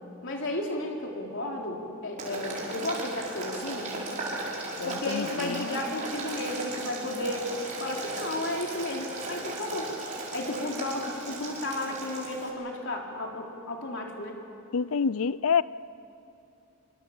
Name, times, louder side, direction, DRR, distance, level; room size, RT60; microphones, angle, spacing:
voice 1, 0.2-3.9 4.8-7.5 7.8-9.9 10.3-14.4, left 2 dB, 60° left, 0 dB, 3.6 m, -33 dB
Boiling, 2.2-12.5, right 2 dB, 35° right, 5.3 m, -36 dB
voice 2, 4.8-5.7 14.7-15.6, left 6 dB, 75° left, 18 dB, 0.5 m, -27 dB
27.0 x 24.0 x 7.2 m, 2.9 s
head